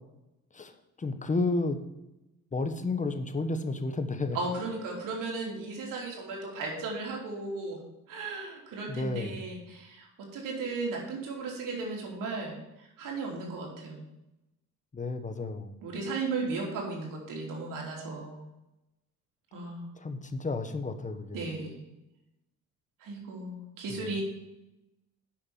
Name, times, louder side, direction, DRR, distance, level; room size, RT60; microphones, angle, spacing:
voice 1, 1.0-1.8 2.5-4.4 8.9-9.5 14.9-15.8 20.0-21.4, left 3 dB, 25° left, 8 dB, 1.2 m, -31 dB
voice 2, 4.3-7.8 8.1-14.1 15.8-18.5 19.5-19.9 21.3-21.8 23.0-24.2, right 3 dB, 85° right, -1 dB, 3.4 m, -36 dB
8.8 x 5.9 x 7.3 m, 0.94 s
cardioid pair, 105°, 31 cm